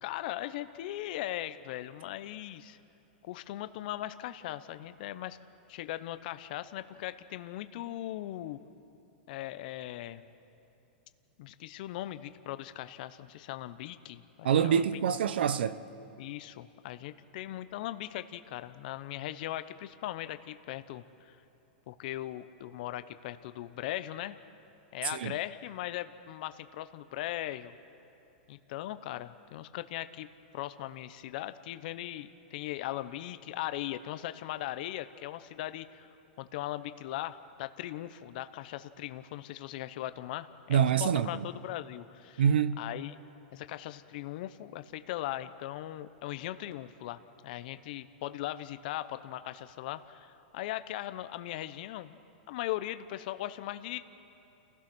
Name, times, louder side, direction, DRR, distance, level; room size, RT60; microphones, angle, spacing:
voice 1, 0.0-2.8 3.3-5.4 5.7-8.6 9.3-10.2 11.4-14.8 16.2-21.4 21.9-24.4 24.9-27.8 28.5-30.3 30.5-36.1 36.4-42.4 42.8-43.2 43.5-52.2 52.5-54.0, left 14 dB, 55° left, 0.9 m, -39 dB
voice 2, 14.4-15.8 25.1-25.3 40.7-41.5 42.4-42.8, right 8 dB, 80° right, 0.8 m, -26 dB
29.5 x 16.0 x 6.2 m
hypercardioid pair, 140°, 5 cm